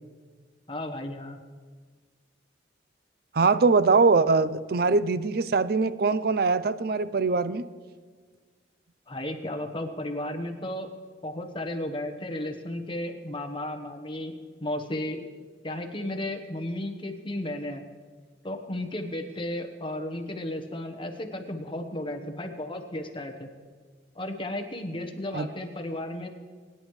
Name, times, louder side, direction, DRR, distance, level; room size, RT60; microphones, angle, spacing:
voice 1, 0.7-1.4 9.1-10.9 11.2-14.3 14.6-15.2 15.6-17.8 18.4-23.5 24.1-26.3, left 1 dB, 25° left, 5 dB, 1.1 m, -34 dB
voice 2, 3.3-7.6 25.3-25.5, right 4 dB, 55° right, 14 dB, 0.5 m, -22 dB
22.5 x 10.0 x 3.2 m, 1.5 s
head